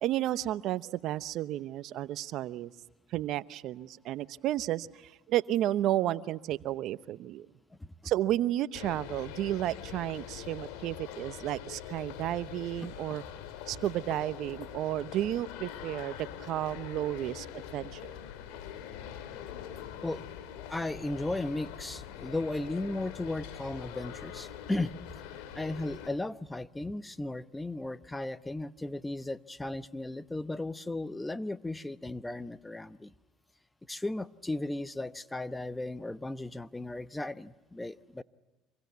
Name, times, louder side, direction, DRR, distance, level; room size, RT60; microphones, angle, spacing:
voice 1, 0.0-2.7 3.1-7.5 8.0-13.2 13.7-18.0, right 13 dB, 60° right, 16 dB, 0.9 m, -32 dB
sound 1, 8.7-26.1, left 9 dB, 75° left, 3.3 m, -44 dB
voice 2, 20.7-24.9 25.3-33.1 33.9-38.2, left 2 dB, 10° left, 15 dB, 1.0 m, -36 dB
27.0 x 23.0 x 9.5 m, 1.1 s
supercardioid pair, 90°, 0 cm